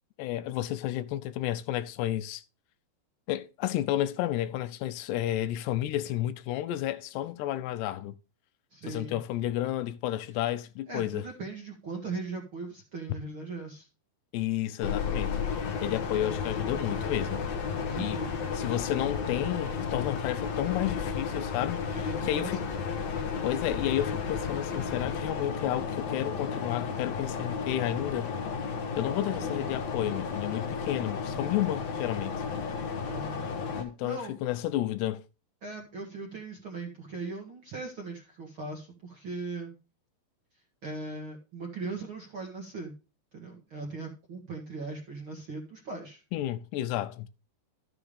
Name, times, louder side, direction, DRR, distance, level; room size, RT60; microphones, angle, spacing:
voice 1, 0.2-2.4 3.3-8.2 8.9-11.3 14.3-15.4 15.8-17.4 18.0-18.2 18.6-22.0 22.2-22.6 23.4-28.3 29.0-32.4 33.8-35.2 46.3-47.3, left 13 dB, 85° left, 2.8 m, -31 dB
voice 2, 8.7-9.2 10.9-13.9 17.8-18.4 21.9-22.8 29.4-29.6 33.0-33.4 33.7-34.3 35.6-39.8 40.5-42.9 43.3-46.2, right 3 dB, 50° right, 1.7 m, -39 dB
sound 1, 14.8-33.8, left 5 dB, 60° left, 1.9 m, -33 dB
13.0 x 7.1 x 3.3 m
omnidirectional pair, 4.8 m